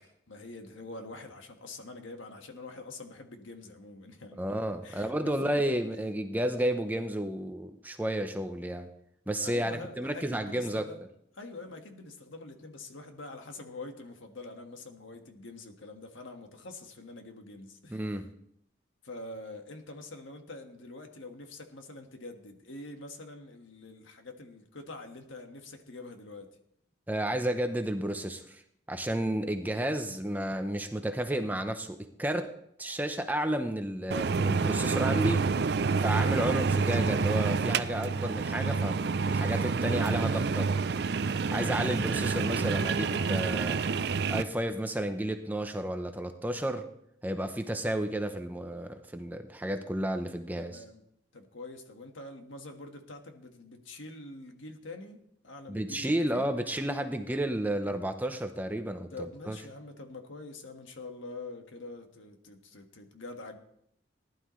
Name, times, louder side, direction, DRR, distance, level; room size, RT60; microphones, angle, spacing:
voice 1, 0.3-4.4 4.8-5.8 9.4-11.0 11.3-18.2 19.0-26.6 41.5-41.9 50.6-51.0 51.3-56.5 59.1-63.6, left 2 dB, 85° left, 5 dB, 1.6 m, -45 dB
voice 2, 4.4-8.9 9.3-10.9 17.9-18.3 27.1-28.6 28.9-32.5 32.8-35.5 36.0-39.0 39.3-40.7 41.5-43.8 44.3-46.9 47.2-50.8 55.7-59.1 59.5-59.6, right 1 dB, 10° right, 6 dB, 0.7 m, -32 dB
sound 1, 34.1-44.4, right 4 dB, 55° right, 0.4 m, -28 dB
19.0 x 11.5 x 3.1 m, 0.75 s
head